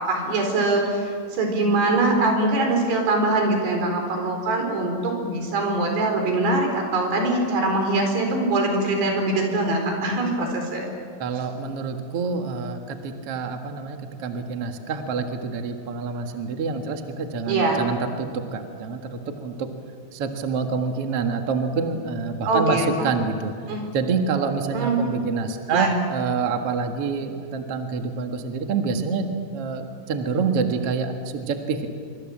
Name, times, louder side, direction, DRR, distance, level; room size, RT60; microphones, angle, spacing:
voice 1, 0.0-10.9 17.5-17.8 22.5-22.8 23.7-23.9 24.7-25.2 25.7-25.9, right 2 dB, 75° right, 3 dB, 6.3 m, -23 dB
voice 2, 11.2-19.7 20.1-23.5 23.9-31.9, right 5 dB, 50° right, 5 dB, 1.9 m, -27 dB
26.5 x 24.5 x 7.4 m, 2.2 s
omnidirectional pair, 4.8 m